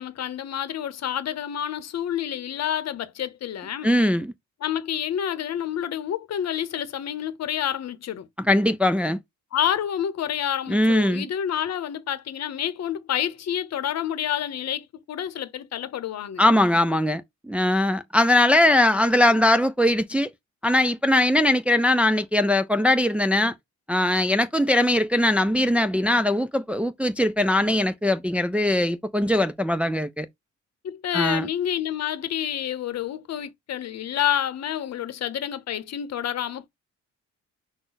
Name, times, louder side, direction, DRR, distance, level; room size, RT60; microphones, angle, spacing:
voice 1, 0.0-3.9 4.6-8.3 9.5-16.4 30.8-36.7, left 10 dB, 60° left, 0.9 m, -28 dB
voice 2, 3.8-4.3 8.4-9.2 10.7-11.3 16.4-20.3 20.6-23.5 23.9-30.3 31.1-31.5, left 1 dB, 5° right, 0.4 m, -21 dB
6.0 x 2.2 x 3.9 m
cardioid pair, 90°, 30 cm